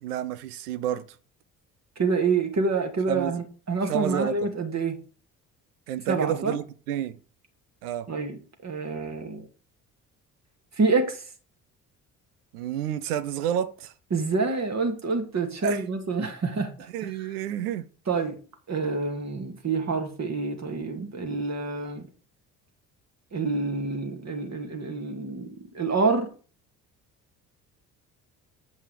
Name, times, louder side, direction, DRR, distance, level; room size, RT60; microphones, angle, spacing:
voice 1, 0.0-1.1 3.1-3.4 3.8-4.4 5.9-7.2 7.8-8.1 12.5-13.9 15.6-15.8 16.9-17.9, right 10 dB, 75° right, 0.8 m, -30 dB
voice 2, 2.0-5.0 6.1-6.6 8.1-9.5 10.8-11.2 14.1-17.1 18.1-18.4 18.7-22.1 23.3-26.3, right 4 dB, 35° right, 2.3 m, -27 dB
8.5 x 5.4 x 4.8 m
figure-of-eight pair, 50°, 46 cm